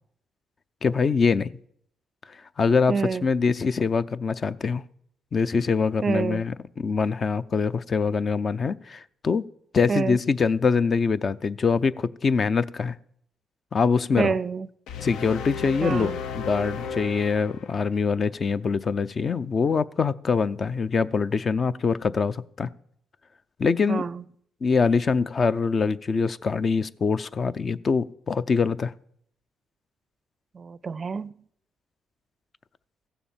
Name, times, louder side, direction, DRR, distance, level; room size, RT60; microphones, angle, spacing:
voice 1, 0.8-1.5 2.3-2.9 3.2-4.8 5.3-9.4 9.7-12.9 13.7-14.4 15.0-22.7 23.6-24.0 24.6-28.9, left 5 dB, 40° left, 0.5 m, -24 dB
voice 2, 2.9-3.2 6.0-6.4 9.9-10.2 14.2-14.7 15.8-16.2 23.9-24.2 30.5-31.3, right 5 dB, 40° right, 0.4 m, -27 dB
sound 1, 14.9-18.1, left 6 dB, 85° left, 0.8 m, -34 dB
15.0 x 7.0 x 7.3 m
cardioid pair, 90°, 0 cm